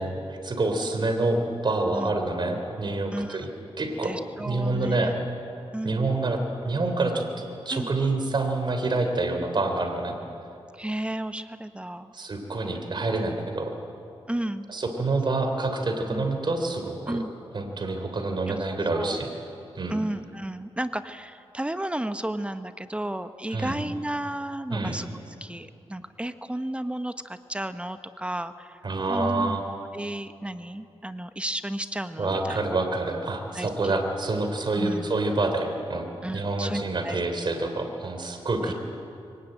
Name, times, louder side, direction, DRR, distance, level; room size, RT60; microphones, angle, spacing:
voice 1, 0.0-3.5 3.8-5.1 5.8-10.1 12.1-13.7 14.7-17.2 17.5-19.3 19.7-20.0 23.5-23.8 24.7-25.0 28.8-29.6 32.2-36.1 36.3-38.7, right 2 dB, 50° right, 5 dB, 3.4 m, -27 dB
voice 2, 3.1-3.5 4.0-5.1 5.7-6.1 7.7-7.9 10.7-12.1 14.3-14.7 16.1-16.3 17.1-17.3 18.5-18.6 18.9-19.2 19.9-29.6 29.9-32.6 33.5-34.0 34.7-35.1 36.2-37.2 38.6-38.7, right 1 dB, 10° right, 10 dB, 1.1 m, -33 dB
23.5 x 19.0 x 9.1 m, 2.6 s
cardioid pair, 70°, 10 cm